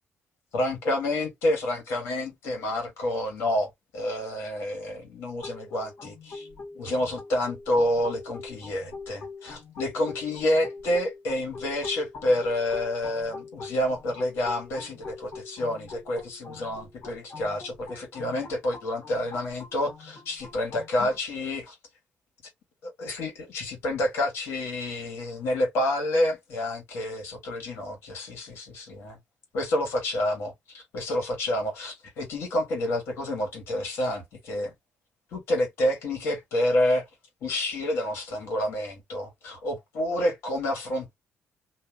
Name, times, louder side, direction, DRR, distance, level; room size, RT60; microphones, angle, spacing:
voice 1, 0.5-6.5 6.7-21.8 22.8-29.2 29.5-34.7 35.3-37.1 37.4-41.2, left 1 dB, 90° left, 1.6 m, -28 dB
sound 1, 5.4-21.2, left 4 dB, 65° left, 1.3 m, -43 dB
2.8 x 2.6 x 3.6 m
cardioid pair, 85°, 4 cm